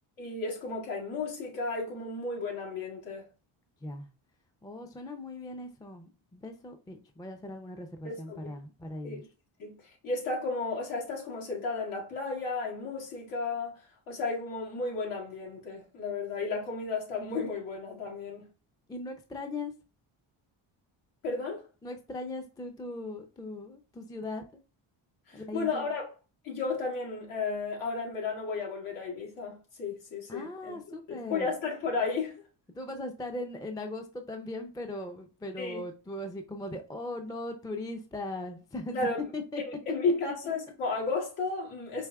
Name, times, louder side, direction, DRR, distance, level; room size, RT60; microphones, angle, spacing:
voice 1, 0.2-3.3 8.0-8.5 9.0-9.3 9.6-13.8 14.1-18.5 21.2-21.6 25.3-26.1 26.4-30.7 31.1-32.3 35.6-35.8 38.9-39.2 39.7-42.1, left 3 dB, 90° left, 2.0 m, -33 dB
voice 2, 4.6-9.2 18.9-19.7 21.8-24.6 25.3-25.9 30.3-31.5 32.8-39.1 39.3-39.6, left 2 dB, 10° left, 0.4 m, -39 dB
4.7 x 2.9 x 2.3 m
cardioid pair, 90°, 48 cm